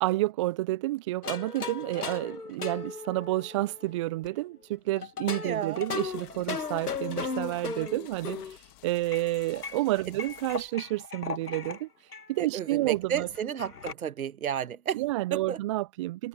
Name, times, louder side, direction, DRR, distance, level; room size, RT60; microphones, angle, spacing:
voice 1, 0.0-8.4 8.8-11.9 12.3-13.3 14.9-16.3, right 17 dB, 20° right, 0.4 m, -30 dB
sound 1, 1.2-4.3 5.0-8.6 9.1-11.8 12.1-12.3 12.5-12.6 12.9-13.9, left 5 dB, 80° left, 2.2 m, -37 dB
voice 2, 5.4-5.8 12.5-15.0 15.3-15.6, right 9 dB, 65° right, 1.7 m, -32 dB
sound 2, 5.5-10.7, left 31 dB, 35° left, 2.7 m, -54 dB
figure-of-eight pair, 110°, 45 cm